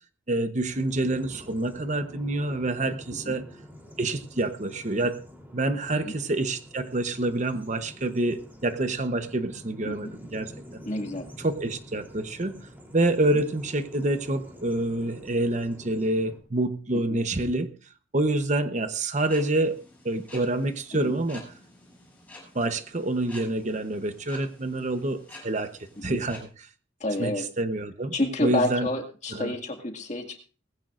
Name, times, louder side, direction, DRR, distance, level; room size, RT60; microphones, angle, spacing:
voice 1, 0.3-3.5 4.0-5.2 5.5-10.8 11.4-17.7 18.1-21.4 22.5-26.7 27.2-28.1 28.4-28.9 29.3-29.5, right 2 dB, 40° right, 9 dB, 0.9 m, -27 dB
Bird vocalization bird call bird song, 0.7-16.4, equal, 10° right, 3.3 m, -47 dB
voice 2, 10.9-11.3 13.3-13.4 16.9-17.2 20.9-21.1 26.1-26.2 27.0-27.5 28.1-30.4, left 1 dB, 40° left, 4 dB, 2.1 m, -29 dB
sound 1, 19.2-26.4, left 2 dB, 10° left, 7.3 m, -50 dB
19.5 x 15.5 x 2.5 m, 0.36 s
head